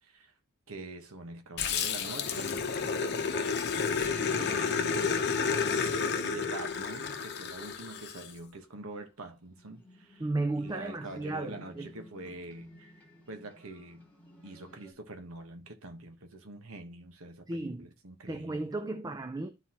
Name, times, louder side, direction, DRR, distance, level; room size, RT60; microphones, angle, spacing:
voice 1, 0.0-0.3 0.7-2.6 4.1-5.3 6.2-10.3 10.5-12.9 13.3-14.1 14.4-18.7, right 2 dB, 65° right, 1.2 m, -45 dB
Growling, 1.6-8.3, left 5 dB, 50° left, 0.8 m, -31 dB
sound 1, 8.0-8.7 9.5-14.9, equal, 5° left, 2.0 m, -56 dB
voice 2, 10.2-11.9 17.5-17.9 18.3-19.5, right 2 dB, 15° right, 0.4 m, -34 dB
12.0 x 4.0 x 2.9 m
head